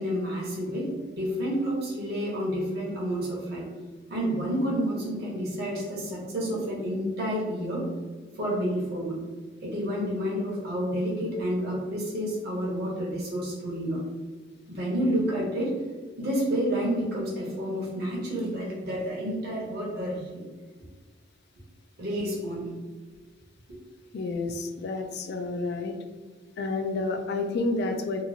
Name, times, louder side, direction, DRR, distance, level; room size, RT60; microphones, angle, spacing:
voice 1, 0.0-3.6 4.1-7.8 8.4-9.2 9.6-14.0 14.7-15.7 16.2-20.4 22.0-22.7, equal, 55° right, -5 dB, 0.9 m, -29 dB
voice 2, 24.1-25.9 26.6-28.2, left 3 dB, 55° left, 6 dB, 0.3 m, -30 dB
2.9 x 2.4 x 2.7 m, 1.4 s
head